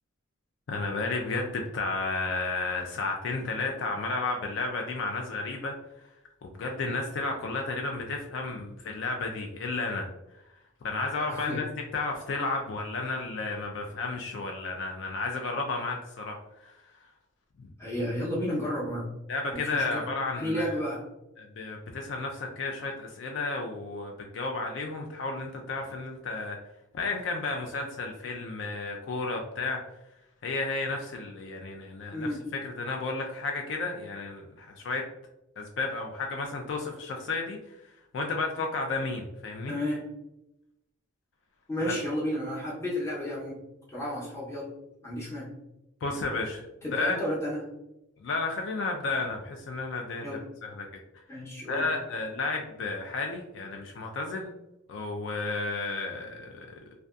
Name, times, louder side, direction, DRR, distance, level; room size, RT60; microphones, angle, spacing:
voice 1, 0.7-5.8 6.4-10.1 10.8-11.6 11.9-16.4 16.6-16.8 17.6-17.7 19.3-20.7 21.4-26.6 26.9-29.8 30.4-32.3 32.6-35.0 35.6-37.6 38.1-39.7 41.9-42.0 46.0-47.2 48.2-50.9 51.7-54.5 54.9-56.7, left 3 dB, 60° left, 2 dB, 0.3 m, -32 dB
voice 2, 11.3-11.6 17.8-19.0 19.5-20.1 20.4-21.0 32.1-32.4 39.7-40.0 41.7-43.6 43.9-44.7 45.0-45.5 46.8-47.6 50.2-50.4 51.3-51.8, equal, 15° left, -5 dB, 0.7 m, -32 dB
2.5 x 2.2 x 2.3 m, 0.90 s
head